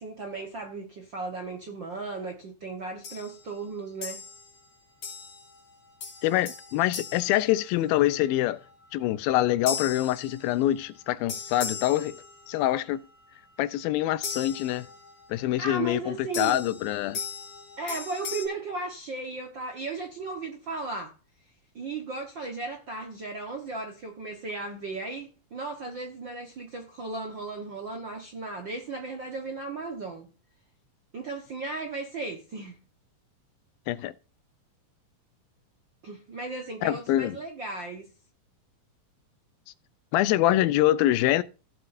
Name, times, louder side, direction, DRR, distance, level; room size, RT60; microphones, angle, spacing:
voice 1, 0.0-4.2 15.4-16.7 17.8-21.1 21.7-30.3 31.1-32.8 36.0-38.1, right 3 dB, 60° right, 1.2 m, -36 dB
sound 1, 3.0-3.4 4.0-4.6 5.0-5.6 6.0-8.2 9.7-10.9 11.3-12.8 14.2-15.3 16.3-18.5, left 5 dB, 45° left, 4.0 m, -38 dB
voice 2, 6.2-8.6 8.9-13.0 13.6-14.9 15.3-17.2 33.9-34.1 36.8-37.4 40.1-41.4, left 14 dB, 90° left, 2.5 m, -25 dB
16.5 x 7.8 x 2.6 m
omnidirectional pair, 4.1 m